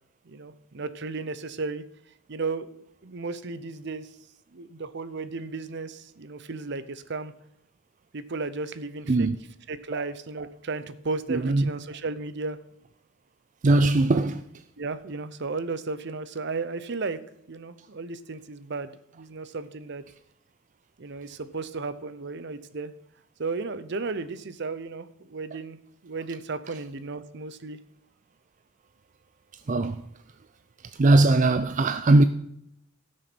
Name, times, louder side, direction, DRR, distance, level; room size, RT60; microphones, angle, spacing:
voice 1, 0.3-1.8 2.3-2.7 3.0-4.1 4.5-7.3 8.1-9.3 9.7-12.6 14.8-17.2 17.5-20.0 21.0-22.9 23.4-25.8 26.0-27.8, right 3 dB, 60° right, 0.8 m, -34 dB
voice 2, 11.3-11.6 13.6-14.4 29.7-30.0 31.0-32.2, right 2 dB, 40° right, 0.4 m, -20 dB
16.0 x 6.4 x 6.2 m
head